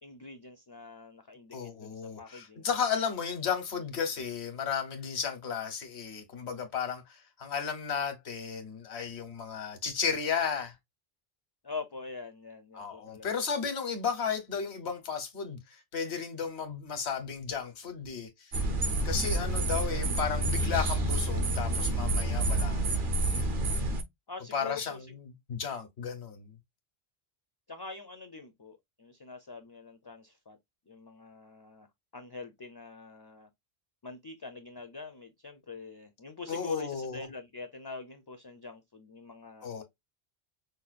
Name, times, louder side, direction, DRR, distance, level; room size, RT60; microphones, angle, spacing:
voice 1, 0.0-2.7 11.6-13.3 24.3-25.1 27.7-30.6 30.9-31.9 32.1-33.5 34.0-39.8, left 3 dB, 35° left, 0.4 m, -44 dB
voice 2, 1.5-10.7 12.7-18.5 19.0-23.0 24.5-26.5 36.5-37.3 39.6-39.8, left 6 dB, 85° left, 1.3 m, -34 dB
sound 1, 18.5-24.0, right 1 dB, 55° right, 0.9 m, -29 dB
5.3 x 2.2 x 2.4 m
omnidirectional pair, 1.1 m